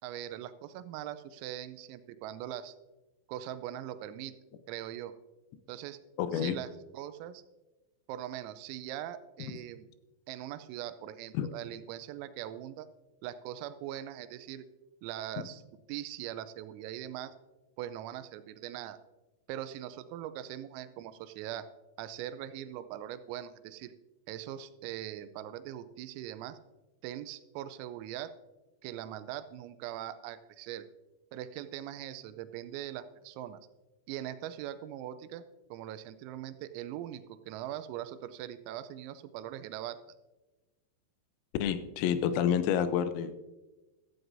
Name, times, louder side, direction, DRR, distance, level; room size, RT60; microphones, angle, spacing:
voice 1, 0.0-2.7 3.3-4.3 4.7-5.1 5.7-6.0 6.3-7.4 8.1-9.9 10.3-12.9 13.2-14.7 15.0-15.6 15.9-17.3 17.8-19.0 19.5-21.7 22.0-23.9 24.3-26.6 27.0-28.3 28.8-30.9 31.3-33.6 34.1-35.4 35.7-40.0, right 12 dB, 90° right, 12 dB, 3.4 m, -41 dB
voice 2, 6.2-6.6 11.3-11.5 41.6-43.3, left 9 dB, 85° left, 11 dB, 3.4 m, -28 dB
15.5 x 14.0 x 2.6 m, 1.1 s
omnidirectional pair, 5.9 m